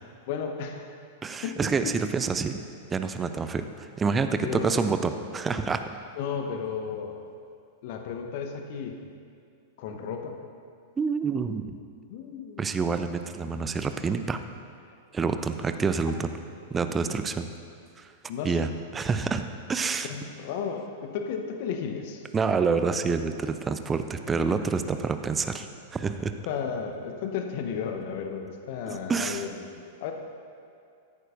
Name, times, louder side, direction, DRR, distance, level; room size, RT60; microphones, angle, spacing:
voice 1, 0.3-0.9 1.4-1.6 1.8-1.9 4.4-4.8 6.2-7.2 7.8-9.0 9.8-10.4 12.1-12.7 18.3-18.7 20.1-22.3 26.5-30.1, left 6 dB, 45° left, 5 dB, 0.9 m, -33 dB
voice 2, 1.2-2.6 2.9-6.0 11.0-11.6 12.6-14.4 15.1-16.3 16.7-17.5 18.0-18.1 18.4-18.7 18.9-19.4 19.7-20.1 22.3-26.3 28.9-29.4, right 5 dB, 15° right, 9 dB, 0.5 m, -27 dB
13.5 x 11.0 x 2.5 m, 2.4 s
figure-of-eight pair, 95°, 0 cm